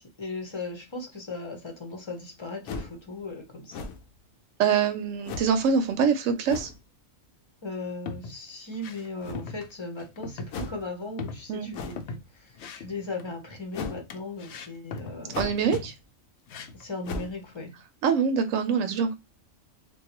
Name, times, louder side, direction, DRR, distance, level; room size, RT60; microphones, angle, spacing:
voice 1, 0.0-3.9 7.6-15.4 16.7-17.8, left 2 dB, 25° left, 0.7 m, -37 dB
sound 1, 2.7-3.0 3.7-4.2 5.2-5.6 6.5-6.8 9.2-9.7 10.5-10.9 11.7-12.1 13.7-14.1 15.3-15.7 16.0-16.1 17.0-17.4, left 4 dB, 85° left, 1.0 m, -36 dB
voice 2, 4.6-6.7 11.5-11.7 15.4-15.9 18.0-19.1, right 6 dB, 75° right, 0.9 m, -24 dB
sound 2, 7.9-8.4 8.7-9.1 9.4-9.7 10.0-10.5 10.8-10.9 11.2-12.3 12.6-13.3 14.1-15.2 15.6-16.0 16.5-16.9, left 4 dB, 65° left, 0.7 m, -39 dB
3.9 x 2.3 x 2.8 m
omnidirectional pair, 1.4 m